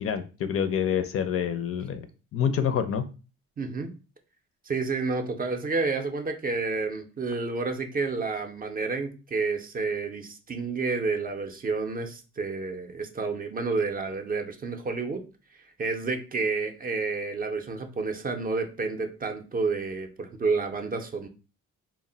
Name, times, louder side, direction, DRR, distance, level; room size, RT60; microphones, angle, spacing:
voice 1, 0.0-2.1 2.3-3.1, left 8 dB, 50° left, 9 dB, 0.4 m, -27 dB
voice 2, 3.6-3.9 4.6-15.2 15.6-21.3, right 4 dB, 30° right, 5 dB, 0.5 m, -30 dB
2.0 x 2.0 x 3.7 m, 0.33 s
cardioid pair, 90°, 30 cm